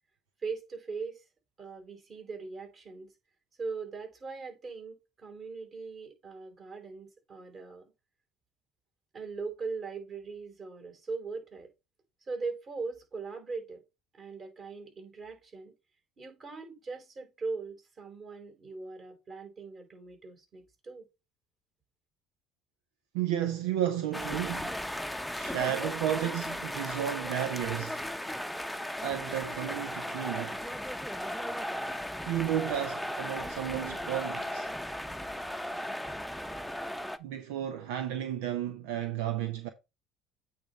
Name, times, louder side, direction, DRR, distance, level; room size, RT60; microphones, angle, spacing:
voice 1, 0.4-1.2 1.6-3.1 3.6-7.9 9.1-11.7 12.2-13.8 14.1-15.7 16.2-21.1, right 4 dB, 45° right, 4.2 m, -40 dB
voice 2, 23.1-24.8 25.4-28.0 29.0-30.6 32.2-34.7 37.2-39.7, right 11 dB, 80° right, 0.7 m, -33 dB
sound 1, 24.1-37.2, left 1 dB, ahead, 0.8 m, -36 dB
8.6 x 3.5 x 5.3 m
hypercardioid pair, 65°, 0 cm